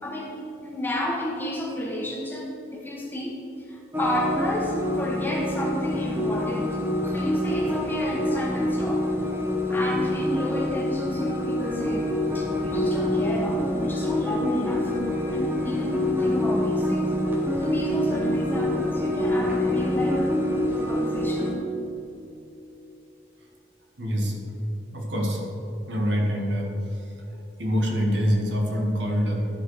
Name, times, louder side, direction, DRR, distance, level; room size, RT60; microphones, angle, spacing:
voice 1, 0.0-3.4 3.7-9.1 9.7-12.1 12.3-14.9 15.3-17.1 17.6-20.3 20.7-21.5, left 1 dB, 10° left, -2 dB, 1.1 m, -31 dB
sound 1, 3.9-21.5, left 1 dB, 10° right, 1.0 m, -26 dB
voice 2, 24.0-24.4 24.9-25.4 25.9-26.7 27.6-29.5, equal, 80° right, 0 dB, 1.5 m, -25 dB
12.0 x 4.7 x 4.8 m, 2.7 s
head